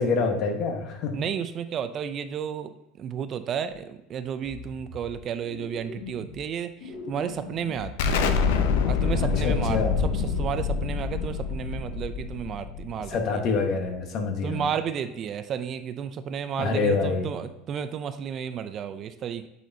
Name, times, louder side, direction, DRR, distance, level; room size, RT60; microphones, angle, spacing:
voice 1, 0.0-1.2 9.2-10.0 13.1-14.7 16.6-17.3, left 4 dB, 50° left, 4 dB, 1.2 m, -26 dB
voice 2, 1.1-8.3 8.8-13.4 14.4-19.5, right 8 dB, 40° right, 11 dB, 0.4 m, -32 dB
sound 1, 3.7-3.8 4.4-5.2 5.4-6.5 6.8-8.8 9.1-9.8 10.1-10.4, left 4 dB, 70° left, 1.8 m, -41 dB
Explosion, 8.0-13.4, left 5 dB, 85° left, 0.6 m, -26 dB
9.0 x 4.2 x 2.7 m, 0.94 s
supercardioid pair, 130°, 0 cm